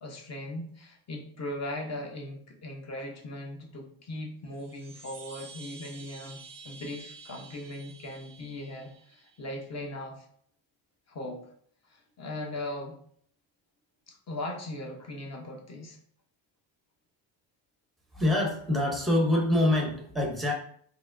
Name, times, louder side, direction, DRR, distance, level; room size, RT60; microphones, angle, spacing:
voice 1, 0.0-10.2 11.1-11.5 11.9-13.0 14.1-16.0, left 1 dB, 35° left, 1 dB, 0.8 m, -39 dB
sound 1, 4.4-9.5, right 4 dB, 45° right, 0.5 m, -49 dB
voice 2, 18.1-20.5, left 1 dB, ahead, 0 dB, 0.6 m, -25 dB
4.5 x 3.0 x 2.5 m, 0.62 s
cardioid pair, 160°, 48 cm